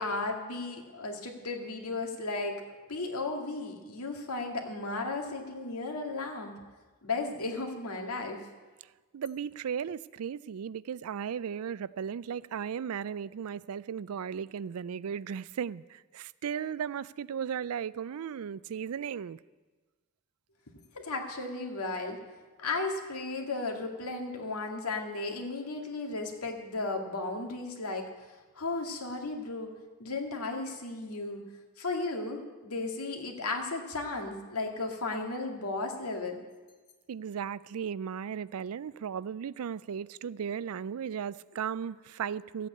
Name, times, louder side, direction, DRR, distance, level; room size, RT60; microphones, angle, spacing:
voice 1, 0.0-2.6 2.9-6.6 7.0-8.5 20.9-22.2 22.6-28.1 28.6-29.7 30.0-31.4 31.8-36.4, left 3 dB, 85° left, 2.0 m, -35 dB
voice 2, 9.1-19.4 37.1-42.7, right 7 dB, 75° right, 0.4 m, -36 dB
14.0 x 8.4 x 8.4 m
head